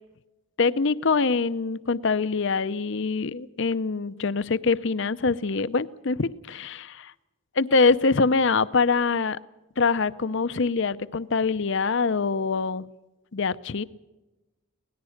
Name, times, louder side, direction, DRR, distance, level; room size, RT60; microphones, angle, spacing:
voice 1, 0.6-7.1 7.6-9.4 9.8-12.9 13.3-13.8, left 4 dB, 55° left, 15 dB, 0.6 m, -24 dB
25.0 x 18.5 x 6.5 m, 1.1 s
head